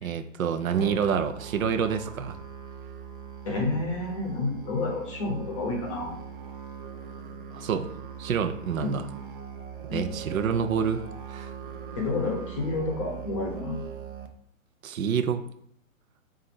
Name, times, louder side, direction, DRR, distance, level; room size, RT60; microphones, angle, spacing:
voice 1, 0.0-2.4 7.5-7.9 8.2-9.1 9.9-11.0 11.3-11.5 14.8-15.4, right 7 dB, 75° right, 8 dB, 0.7 m, -27 dB
Musical instrument, 0.7-14.3, right 6 dB, 40° right, 0.5 m, -41 dB
voice 2, 3.4-6.2 8.8-9.0 9.9-10.2 12.0-13.8, left 3 dB, 25° left, 0 dB, 0.7 m, -30 dB
4.0 x 2.6 x 4.3 m, 0.70 s
hypercardioid pair, 155°, 41 cm